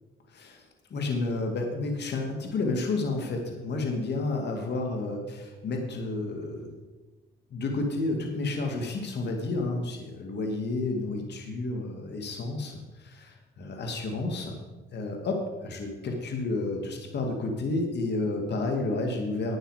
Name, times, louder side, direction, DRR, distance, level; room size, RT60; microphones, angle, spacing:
voice 1, 0.9-5.2 5.6-6.7 7.5-14.5 14.9-19.6, left 2 dB, 60° left, 3 dB, 2.1 m, -31 dB
11.5 x 9.1 x 4.9 m, 1.2 s
cardioid pair, 90°, 20 cm